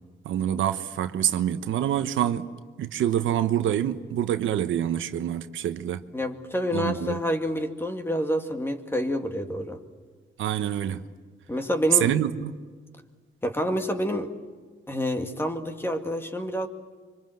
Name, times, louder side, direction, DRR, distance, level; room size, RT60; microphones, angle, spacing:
voice 1, 0.2-2.5 2.8-6.0 6.7-7.2 10.4-11.0 11.9-12.5, right 11 dB, 90° right, 10 dB, 1.1 m, -26 dB
voice 2, 6.1-9.8 11.5-12.1 13.4-14.3 14.9-16.7, equal, 10° left, 6 dB, 2.1 m, -28 dB
25.0 x 25.0 x 7.9 m, 1.5 s
cardioid pair, 110°, 19 cm